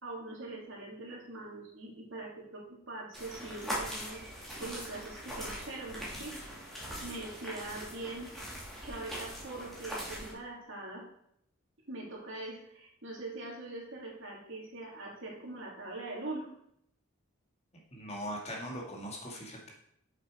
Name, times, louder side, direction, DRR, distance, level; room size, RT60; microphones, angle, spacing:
voice 1, 0.0-4.2 4.6-6.3 7.0-8.3 8.8-11.0 11.9-16.5, right 2 dB, 60° right, -2 dB, 2.9 m, -42 dB
sound 1, 3.1-10.3, equal, ahead, 2.9 m, -41 dB
voice 2, 17.9-19.7, equal, 30° left, -1 dB, 2.0 m, -40 dB
7.9 x 7.3 x 4.8 m, 0.71 s
head